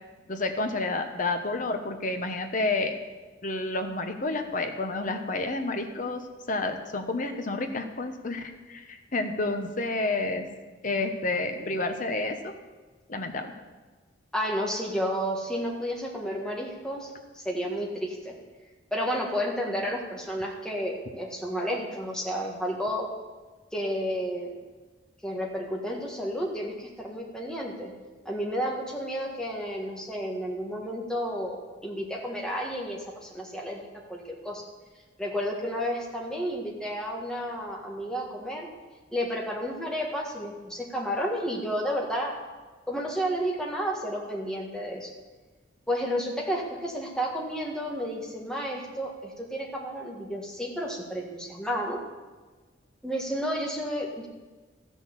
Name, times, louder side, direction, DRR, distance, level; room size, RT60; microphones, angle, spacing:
voice 1, 0.3-2.9 3.4-6.2 6.5-10.5 10.8-12.5 13.1-13.5, left 2 dB, 45° left, 6 dB, 1.1 m, -30 dB
voice 2, 14.3-18.3 18.9-23.1 23.7-24.5 25.2-27.9 28.2-34.6 35.2-38.7 39.1-42.3 42.9-45.1 45.9-52.0 53.0-54.3, equal, 5° left, -2 dB, 1.8 m, -31 dB
13.5 x 6.4 x 7.4 m, 1.3 s
head